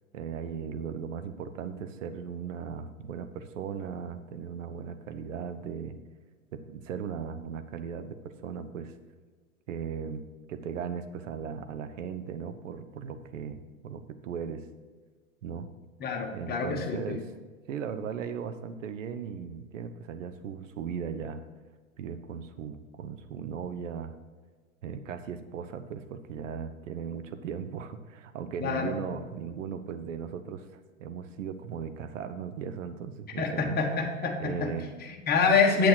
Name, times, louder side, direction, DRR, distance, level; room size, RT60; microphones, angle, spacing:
voice 1, 0.1-6.0 6.5-8.9 9.7-14.6 15.4-15.7 16.3-17.2 17.7-21.4 22.0-24.2 24.8-33.8 34.4-35.1, right 7 dB, 60° right, 9 dB, 0.9 m, -37 dB
voice 2, 16.0-17.2 28.6-28.9 33.4-34.7 35.3-35.9, left 5 dB, 20° left, 2 dB, 1.5 m, -26 dB
8.4 x 8.3 x 4.6 m, 1.4 s
figure-of-eight pair, 100°, 42 cm